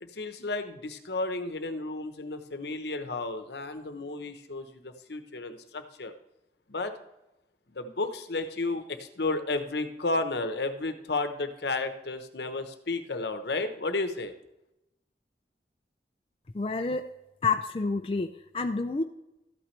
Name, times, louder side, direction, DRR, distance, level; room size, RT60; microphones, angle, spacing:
voice 1, 0.0-6.1 6.7-6.9 7.7-14.3, left 2 dB, 70° left, 9 dB, 0.9 m, -32 dB
voice 2, 16.5-17.0 17.4-19.0, left 4 dB, 30° left, 5 dB, 0.4 m, -29 dB
13.5 x 8.9 x 3.2 m, 0.94 s
head